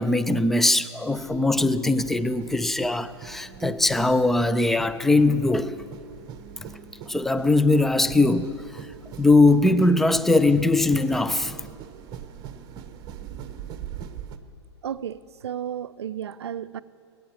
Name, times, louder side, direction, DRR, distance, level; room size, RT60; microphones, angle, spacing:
voice 1, 0.0-5.7 7.1-8.9 9.2-11.7, left 2 dB, ahead, 0.4 m, -21 dB
sound 1, 1.1-14.4, right 8 dB, 25° right, 1.0 m, -42 dB
voice 2, 14.8-16.8, right 9 dB, 65° right, 0.5 m, -33 dB
19.5 x 9.4 x 7.4 m
figure-of-eight pair, 110°, 15 cm